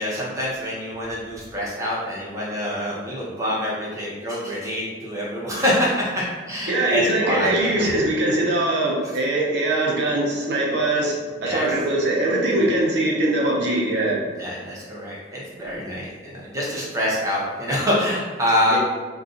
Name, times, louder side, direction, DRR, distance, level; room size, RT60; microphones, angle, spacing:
voice 1, 0.0-8.0 11.4-11.7 14.4-18.8, equal, 15° right, -6 dB, 0.7 m, -26 dB
voice 2, 6.7-11.2 11.4-14.2 18.7-18.8, right 2 dB, 60° right, -3 dB, 0.7 m, -22 dB
2.5 x 2.3 x 3.8 m, 1.4 s
head